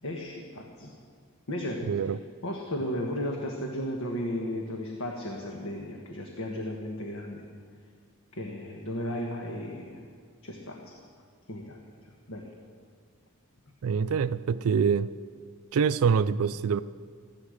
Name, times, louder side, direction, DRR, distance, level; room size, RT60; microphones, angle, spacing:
voice 1, 0.0-0.9 1.5-1.9 2.4-7.4 8.3-10.1 10.4-10.9 11.5-11.8 12.3-12.5, left 1 dB, 70° left, 1.4 m, -34 dB
voice 2, 1.9-2.2 13.8-15.1 15.7-16.8, right 6 dB, 70° right, 0.4 m, -25 dB
15.5 x 12.0 x 6.5 m
head